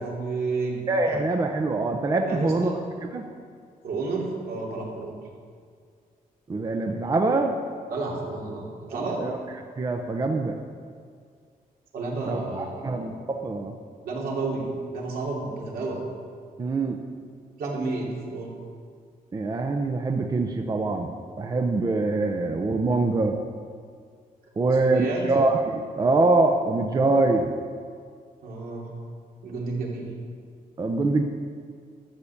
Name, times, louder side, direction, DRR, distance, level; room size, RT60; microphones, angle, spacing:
voice 1, 0.0-0.8 1.0-1.2 2.3-2.8 3.8-5.2 7.9-9.2 11.9-13.1 14.0-16.0 17.6-18.6 24.6-25.2 28.4-28.9 29.4-30.1, right 3 dB, 80° right, -3 dB, 2.9 m, -31 dB
voice 2, 0.9-2.7 3.1-3.3 6.5-7.6 8.9-9.4 9.8-10.6 12.2-13.7 16.6-17.0 19.3-23.4 24.6-27.5 30.8-31.2, right 3 dB, 25° right, 4 dB, 0.7 m, -24 dB
13.0 x 6.7 x 7.1 m, 2.1 s
wide cardioid pair, 165°, 15 cm